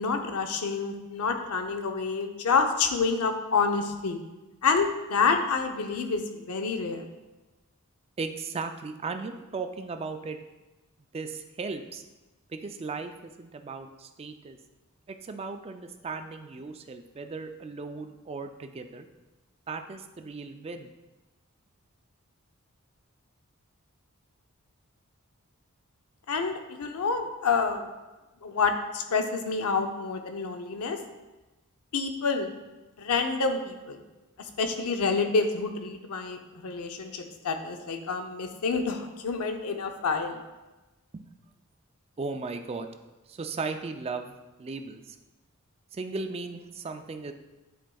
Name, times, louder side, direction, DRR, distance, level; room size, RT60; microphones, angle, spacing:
voice 1, 0.0-4.2 4.6-7.0 26.3-27.9 28.4-31.0 31.9-32.5 33.0-34.0 34.4-40.4, left 4 dB, 80° left, 5 dB, 0.6 m, -28 dB
voice 2, 8.2-10.4 11.1-12.0 12.5-14.6 15.1-19.1 19.7-20.9 41.1-41.3 42.2-42.9 43.3-45.2 45.9-47.3, right 4 dB, 25° right, 7 dB, 0.3 m, -36 dB
10.0 x 4.5 x 2.3 m, 1.1 s
head